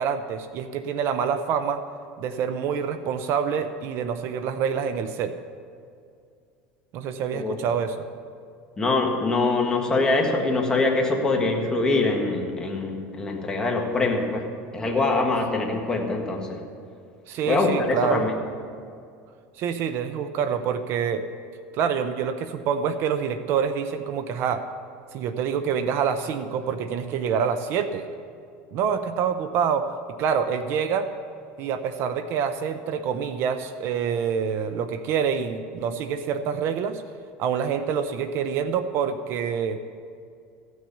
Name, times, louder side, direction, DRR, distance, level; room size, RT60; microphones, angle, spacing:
voice 1, 0.0-1.8 2.2-5.3 6.9-8.1 17.3-18.2 19.6-21.3 21.7-24.6 25.1-28.1 28.7-29.9 30.2-31.1 31.6-37.0 37.4-39.8, right 7 dB, 50° right, 10 dB, 0.6 m, -26 dB
voice 2, 8.8-14.5 14.7-16.6 17.5-18.3, left 3 dB, 15° left, 1 dB, 1.5 m, -24 dB
14.5 x 6.2 x 7.1 m, 2.3 s
supercardioid pair, 135°, 5 cm